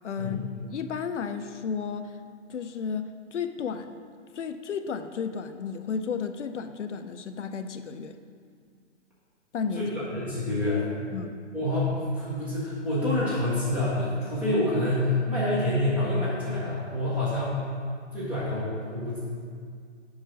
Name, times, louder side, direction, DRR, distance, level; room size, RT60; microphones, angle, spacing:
voice 1, 0.0-2.2 2.5-4.0 4.3-8.2 9.5-9.9 11.1-11.4, left 6 dB, 80° left, 9 dB, 0.6 m, -33 dB
voice 2, 9.8-10.8 11.5-17.6 18.1-19.2, left 1 dB, 5° right, -9 dB, 0.4 m, -27 dB
5.2 x 4.8 x 6.1 m, 2.1 s
figure-of-eight pair, 135°, 35 cm